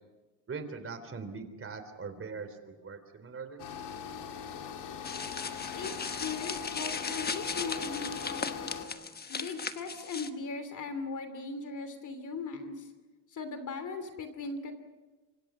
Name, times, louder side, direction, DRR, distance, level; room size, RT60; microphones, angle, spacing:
voice 1, 0.5-3.6, right 4 dB, 30° right, 9 dB, 3.6 m, -41 dB
sound 1, 3.6-8.9, left 7 dB, 75° left, 3.6 m, -40 dB
sound 2, 5.0-10.3, left 5 dB, 25° left, 1.2 m, -37 dB
voice 2, 5.7-8.7 9.3-12.9 13.3-14.7, left 4 dB, 45° left, 9 dB, 3.0 m, -39 dB
26.0 x 25.5 x 6.2 m, 1.2 s
cardioid pair, 100°, 40 cm